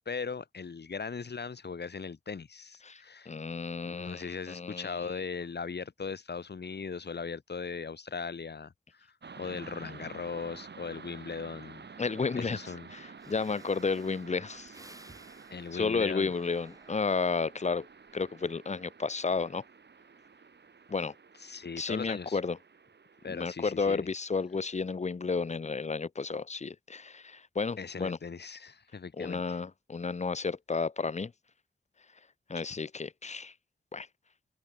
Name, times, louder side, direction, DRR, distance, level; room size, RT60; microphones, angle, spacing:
voice 1, 0.0-3.3 3.8-11.9 12.4-12.9 15.5-16.3 21.4-22.4 23.2-24.1 27.8-29.4, left 5 dB, 60° left, 5.2 m, -39 dB
voice 2, 2.8-5.0 9.5-9.6 12.0-12.6 12.9-14.7 15.7-17.9 18.1-19.6 20.9-21.1 21.8-22.6 23.3-28.2 29.2-31.3 32.5-33.5 33.9-34.1, left 4 dB, 35° left, 1.0 m, -32 dB
sound 1, 9.2-23.6, right 5 dB, 65° right, 6.7 m, -51 dB
Breathing, 13.2-17.4 17.9-18.3, right 2 dB, 20° right, 7.8 m, -57 dB
wide cardioid pair, 120°, 19 cm